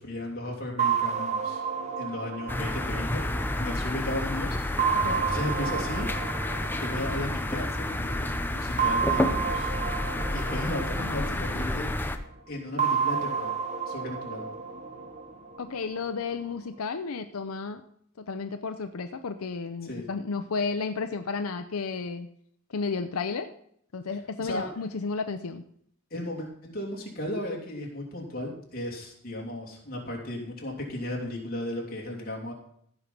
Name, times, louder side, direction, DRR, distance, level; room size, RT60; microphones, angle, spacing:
voice 1, 0.0-1.6 2.0-3.2 3.6-6.3 6.8-9.7 10.3-11.9 12.5-13.5 13.9-14.4 19.8-20.1 24.4-24.7 26.1-32.5, left 1 dB, 45° left, -1 dB, 2.8 m, -35 dB
sound 1, 0.8-4.1 4.8-7.7 8.8-11.9 12.8-15.9, right 6 dB, 30° right, 0.8 m, -31 dB
sound 2, 2.5-12.2, left 1 dB, 10° left, 0.6 m, -30 dB
voice 2, 4.9-5.3 11.0-11.5 15.6-17.8 18.2-22.3 22.7-23.5 23.9-25.6, left 4 dB, 90° left, 8 dB, 0.6 m, -33 dB
15.5 x 5.4 x 6.0 m, 0.67 s
head